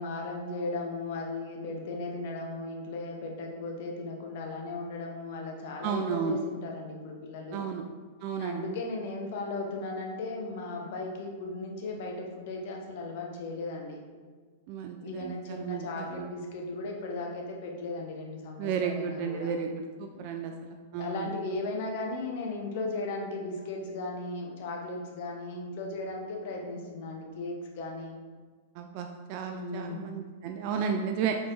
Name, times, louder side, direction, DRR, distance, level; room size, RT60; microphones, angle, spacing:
voice 1, 0.0-7.7 8.4-14.0 15.0-19.5 20.1-20.4 21.0-28.1 29.5-30.1, left 2 dB, 60° left, 1 dB, 0.8 m, -36 dB
voice 2, 5.8-6.4 7.5-7.8 8.2-8.7 14.7-16.3 18.6-21.3 28.8-31.4, right 6 dB, 50° right, 4 dB, 0.3 m, -33 dB
4.2 x 4.0 x 3.2 m, 1.5 s
hypercardioid pair, 105°, 0 cm